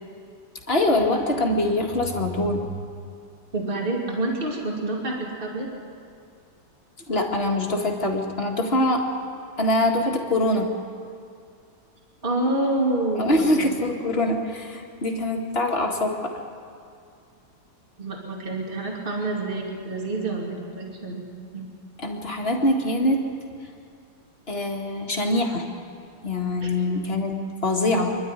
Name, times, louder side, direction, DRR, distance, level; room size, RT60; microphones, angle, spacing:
voice 1, 0.7-2.7 7.1-9.1 9.6-10.8 13.2-16.4 22.0-23.2 24.5-25.7 26.2-28.2, left 1 dB, 30° left, 1 dB, 2.1 m, -24 dB
voice 2, 3.5-5.7 12.2-13.6 18.0-21.2 21.5-21.7 26.6-26.7, right 2 dB, 30° right, -1 dB, 2.8 m, -27 dB
25.5 x 12.0 x 9.7 m, 2.4 s
omnidirectional pair, 2.0 m